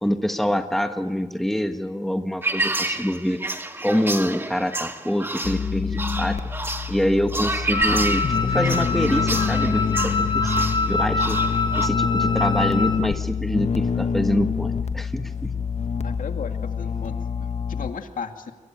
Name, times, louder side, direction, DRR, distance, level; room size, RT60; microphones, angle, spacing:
voice 1, 0.0-3.4 3.8-6.5 6.9-15.6, equal, ahead, 6 dB, 1.5 m, -26 dB
sound 1, 2.4-11.9, right 2 dB, 15° right, 1.7 m, -29 dB
sound 2, 5.4-17.9, left 6 dB, 55° left, 1.2 m, -26 dB
Wind instrument woodwind instrument, 7.7-13.1, left 3 dB, 35° left, 3.8 m, -25 dB
voice 2, 16.0-18.5, left 6 dB, 90° left, 5 dB, 2.3 m, -35 dB
27.5 x 23.0 x 9.1 m, 1.2 s
wide cardioid pair, 165°, 13 cm